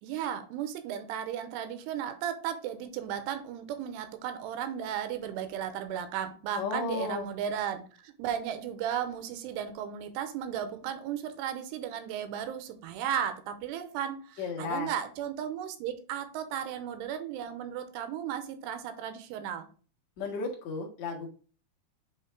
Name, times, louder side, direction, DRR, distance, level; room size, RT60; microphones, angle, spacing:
voice 1, 0.0-19.7, right 9 dB, 90° right, 2.8 m, -35 dB
voice 2, 6.6-7.3 14.4-14.9 20.2-21.3, left 4 dB, 55° left, 2.3 m, -34 dB
7.7 x 3.0 x 4.6 m
omnidirectional pair, 4.8 m